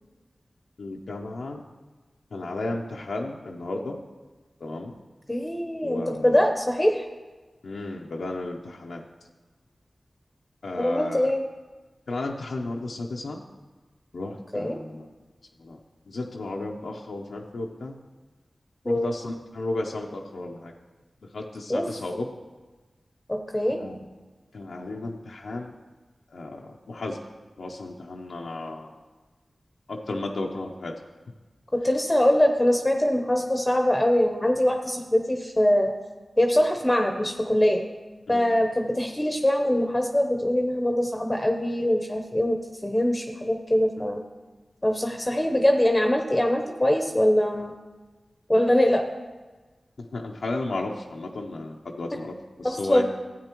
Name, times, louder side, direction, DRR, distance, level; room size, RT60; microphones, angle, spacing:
voice 1, 0.8-1.6 2.3-4.0 4.6-4.9 5.8-6.4 7.6-9.0 10.6-11.3 12.1-13.4 14.1-15.1 15.6-15.8 16.1-18.0 18.9-20.7 21.2-22.3 23.8-24.0 24.5-25.8 26.3-27.2 27.6-28.9 29.9-31.0 38.3-38.5 50.0-53.0, left 2 dB, 90° left, -1 dB, 0.6 m, -33 dB
voice 2, 5.3-7.0 10.8-11.4 14.5-14.8 18.8-19.1 21.7-21.8 23.3-23.8 31.7-35.9 36.4-37.8 38.3-44.2 44.8-47.7 48.5-49.0 52.6-53.0, left 1 dB, 20° left, 4 dB, 0.7 m, -23 dB
12.0 x 8.6 x 3.0 m, 1.3 s
cardioid pair, 45°, 0 cm